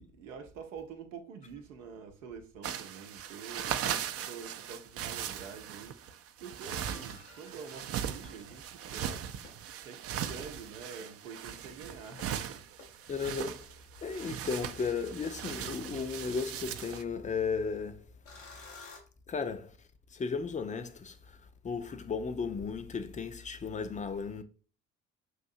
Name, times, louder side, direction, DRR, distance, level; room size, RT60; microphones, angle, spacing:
voice 1, 0.0-9.3 9.8-12.6, right 6 dB, 80° right, 0.7 m, -47 dB
sound 1, 2.6-17.0, right 9 dB, 40° right, 0.4 m, -39 dB
sound 2, 6.7-9.9 10.3-10.7 11.0-19.0, left 4 dB, 85° left, 0.8 m, -56 dB
voice 2, 13.1-13.7 14.0-18.1 19.3-19.7 20.1-21.4 21.6-24.4, left 5 dB, 20° left, 0.4 m, -35 dB
5.8 x 2.7 x 2.6 m
figure-of-eight pair, 50°, 38 cm